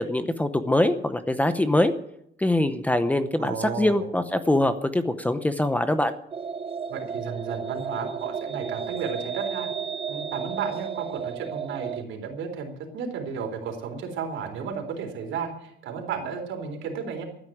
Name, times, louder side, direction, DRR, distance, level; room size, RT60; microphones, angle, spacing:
voice 1, 0.0-1.9 2.4-6.1, left 1 dB, 5° left, 10 dB, 0.7 m, -23 dB
voice 2, 3.4-4.1 6.9-9.7 10.1-17.2, right 6 dB, 75° right, 3 dB, 4.0 m, -33 dB
sound 1, 6.3-12.0, right 6 dB, 30° right, 0.6 m, -33 dB
14.0 x 9.6 x 9.2 m, 0.76 s
cardioid pair, 165°, 20 cm